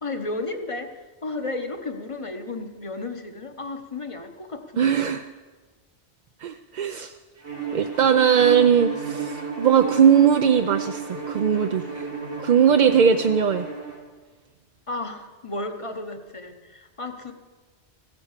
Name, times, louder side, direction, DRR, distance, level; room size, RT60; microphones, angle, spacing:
voice 1, 0.0-5.0 7.7-7.8 8.4-8.7 14.9-17.3, left 2 dB, 30° left, 7 dB, 0.9 m, -33 dB
voice 2, 4.8-5.3 6.4-7.1 7.7-12.1 12.4-13.7, right 7 dB, 55° right, 7 dB, 0.5 m, -19 dB
Bowed string instrument, 7.4-14.0, right 5 dB, 80° right, 2.5 m, -32 dB
15.0 x 9.8 x 7.3 m, 1.3 s
omnidirectional pair, 1.2 m